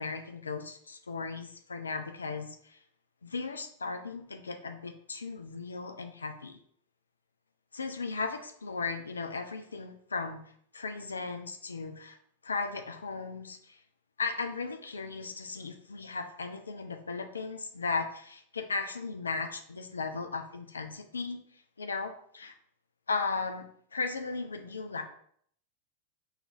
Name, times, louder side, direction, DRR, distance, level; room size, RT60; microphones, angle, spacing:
voice 1, 0.0-2.8 3.2-6.6 7.7-10.4 10.7-12.2 12.4-13.8 14.2-22.5 23.1-25.0, left 4 dB, 75° left, 7 dB, 0.4 m, -36 dB
4.8 x 3.2 x 2.5 m, 0.64 s
figure-of-eight pair, 90°, 0 cm